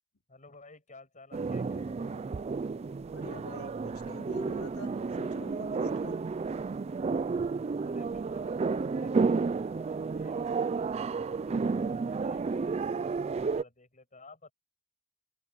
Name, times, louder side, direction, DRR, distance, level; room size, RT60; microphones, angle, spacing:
voice 1, 0.3-2.4 7.8-12.8 13.2-14.5, left 3 dB, 35° left, 6.1 m, -55 dB
sound 1, 1.3-13.6, right 4 dB, 30° right, 0.3 m, -31 dB
voice 2, 3.1-6.2, left 2 dB, 80° left, 3.4 m, -47 dB
open air
head